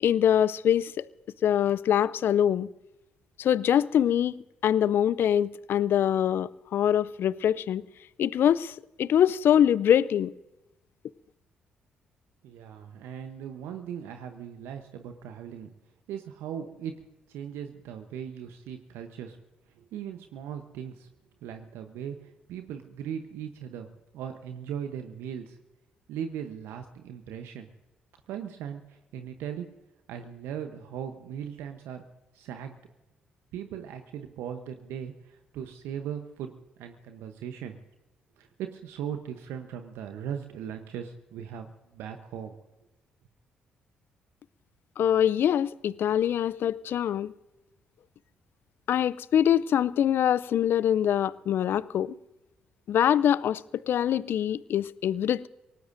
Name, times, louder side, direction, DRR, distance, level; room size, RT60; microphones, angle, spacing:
voice 1, 0.0-1.0 1.4-2.7 3.4-4.3 4.6-7.8 8.2-10.3 45.0-47.3 48.9-52.1 52.9-53.6 53.9-55.5, left 10 dB, 60° left, 0.4 m, -24 dB
voice 2, 12.4-15.7 16.1-19.4 19.7-21.1 21.4-23.9 24.1-25.6 26.1-27.7 28.3-29.7 30.1-32.0 32.3-32.8 33.5-36.5 36.8-37.8 38.4-42.5, right 8 dB, 75° right, 0.9 m, -38 dB
24.5 x 18.5 x 2.6 m
hypercardioid pair, 45°, 4 cm